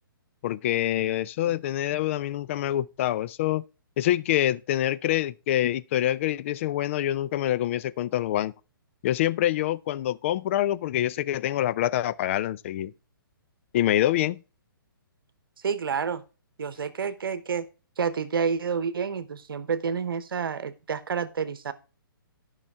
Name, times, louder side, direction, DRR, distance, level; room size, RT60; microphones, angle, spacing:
voice 1, 0.4-3.6 4.0-8.5 9.0-12.9 13.7-14.4, left 13 dB, 35° left, 0.3 m, -26 dB
voice 2, 15.6-16.2 16.6-17.7 18.0-21.7, right 6 dB, 75° right, 1.0 m, -29 dB
12.0 x 5.8 x 3.4 m
hypercardioid pair, 145°, 12 cm